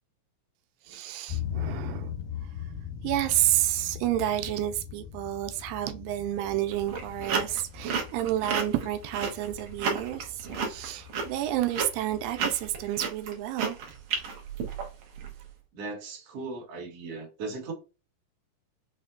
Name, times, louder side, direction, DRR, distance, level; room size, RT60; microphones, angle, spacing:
voice 1, 0.9-2.1 3.0-13.8, right 13 dB, 90° right, 2.3 m, -30 dB
sound 1, 1.3-12.9, left 9 dB, 80° left, 2.2 m, -40 dB
sound 2, 6.7-15.3, right 5 dB, 75° right, 1.5 m, -32 dB
voice 2, 15.7-17.7, right 3 dB, 60° right, 1.8 m, -38 dB
5.6 x 2.1 x 2.4 m
omnidirectional pair, 3.9 m